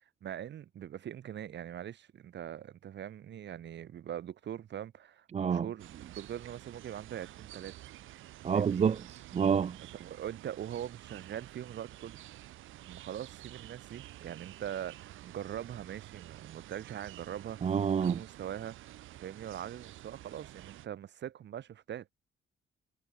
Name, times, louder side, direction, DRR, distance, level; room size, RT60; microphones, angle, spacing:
voice 1, 0.2-7.7 8.5-8.8 10.0-12.2 12.8-17.6 18.0-18.8 19.1-22.1, right 10 dB, 65° right, 2.0 m, -42 dB
voice 2, 5.3-5.7 8.4-9.8 17.6-18.2, right 7 dB, 35° right, 0.5 m, -28 dB
sound 1, 5.8-20.9, right 15 dB, 85° right, 2.6 m, -50 dB
cardioid pair, 90°, 20 cm